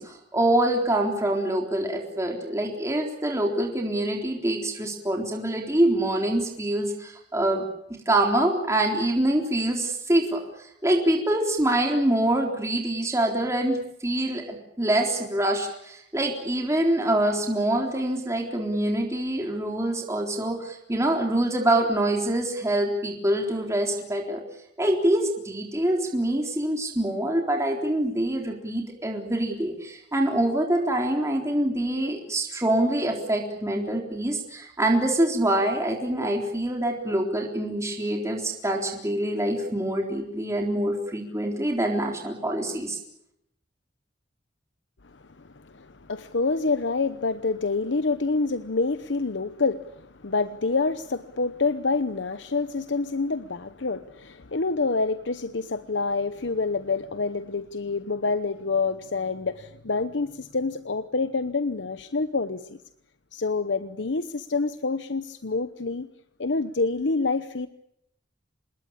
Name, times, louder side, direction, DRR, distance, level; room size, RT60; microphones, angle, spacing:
voice 1, 0.0-7.6 8.1-24.4 24.8-43.0, right 1 dB, 15° right, 3.8 m, -25 dB
voice 2, 45.1-62.8 63.3-66.1 66.4-67.7, left 3 dB, 75° left, 0.9 m, -27 dB
27.0 x 21.0 x 8.7 m
head